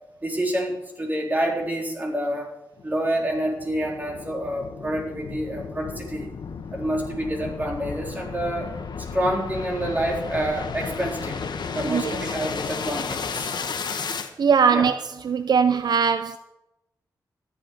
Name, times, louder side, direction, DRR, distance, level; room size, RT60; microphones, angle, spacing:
voice 1, 0.2-2.5 2.8-6.3 6.7-8.7 9.1-11.4 11.7-13.6 14.7-14.9, right 1 dB, 20° right, 3.8 m, -27 dB
sound 1, 2.8-14.3, left 5 dB, 75° left, 1.3 m, -33 dB
voice 2, 11.8-12.2 14.4-15.0 15.2-16.4, right 6 dB, 65° right, 0.5 m, -20 dB
13.5 x 10.5 x 5.3 m
wide cardioid pair, 95°, 8 cm